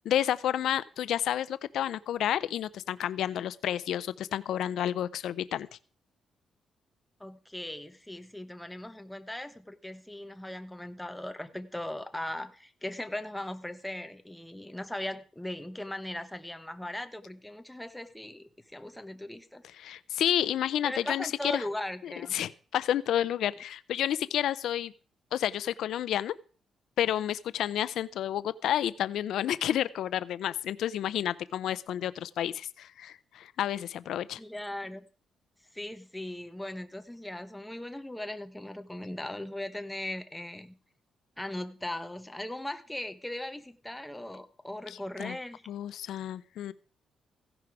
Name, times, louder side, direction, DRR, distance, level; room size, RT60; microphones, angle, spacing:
voice 1, 0.0-5.7 19.8-21.6 22.0-24.9 25.3-26.3 27.0-34.4 45.2-45.4 45.7-46.7, left 11 dB, 80° left, 16 dB, 0.5 m, -30 dB
voice 2, 7.2-19.6 20.8-22.3 34.4-35.0 35.7-40.7 41.4-45.6, left 1 dB, 5° left, 8 dB, 1.0 m, -38 dB
15.5 x 11.0 x 4.8 m, 0.40 s
cardioid pair, 160°, 0 cm